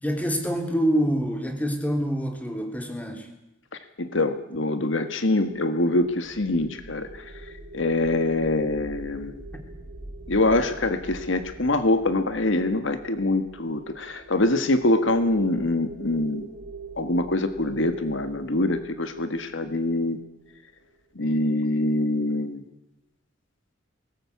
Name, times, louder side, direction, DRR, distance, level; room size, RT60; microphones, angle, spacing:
voice 1, 0.0-3.3, equal, 10° left, 4 dB, 3.1 m, -26 dB
voice 2, 4.0-7.3 7.7-9.4 10.3-16.5 17.0-20.2 21.1-22.6, left 2 dB, 70° left, 9 dB, 1.6 m, -24 dB
sound 1, 5.9-20.7, right 3 dB, 85° right, 3.1 m, -43 dB
21.5 x 18.5 x 8.5 m, 0.91 s
head